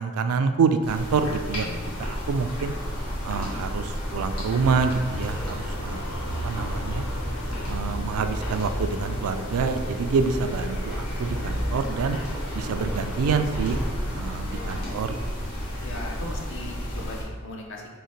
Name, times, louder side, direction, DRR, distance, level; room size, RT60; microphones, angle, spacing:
voice 1, 0.0-1.7 2.0-2.7 3.2-6.0 6.4-7.0 7.6-12.2 12.5-13.8 14.1-15.2, right 5 dB, 80° right, 9 dB, 0.3 m, -27 dB
sound 1, 0.8-17.2, equal, 85° left, 1.4 m, -31 dB
Engine, 5.0-16.0, equal, 5° left, 0.5 m, -40 dB
voice 2, 14.0-14.8 15.8-18.0, left 1 dB, 55° left, 0 dB, 0.7 m, -39 dB
3.8 x 3.1 x 4.4 m, 1.5 s
head